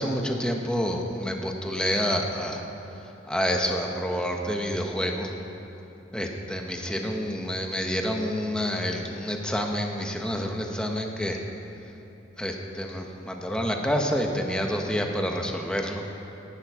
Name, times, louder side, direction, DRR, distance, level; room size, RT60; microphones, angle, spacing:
voice 1, 0.0-2.6 3.2-5.3 6.1-11.4 12.4-16.0, equal, 5° left, 2 dB, 1.2 m, -28 dB
18.5 x 11.5 x 4.9 m, 2.9 s
head